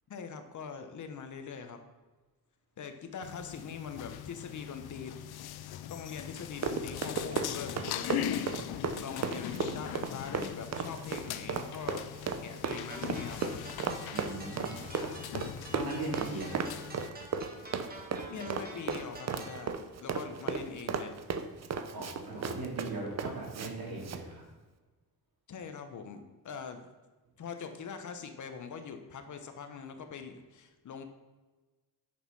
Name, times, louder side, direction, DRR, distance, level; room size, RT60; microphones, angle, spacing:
voice 1, 0.1-1.8 2.8-5.1 5.9-8.7 9.0-12.0 12.4-13.5 18.3-21.2 25.5-26.9 27.4-31.0, left 6 dB, 50° left, 7 dB, 1.1 m, -43 dB
sound 1, 3.2-17.1, left 11 dB, 85° left, 0.6 m, -40 dB
Run, 6.3-23.7 24.0-24.2, right 6 dB, 45° right, 0.8 m, -35 dB
sound 2, 12.7-19.7, right 2 dB, 25° right, 1.6 m, -48 dB
voice 2, 14.1-15.1 15.7-16.6 21.9-24.4, right 2 dB, 70° right, -2 dB, 3.3 m, -39 dB
9.0 x 6.4 x 5.5 m, 1.2 s
cardioid pair, 140°, 37 cm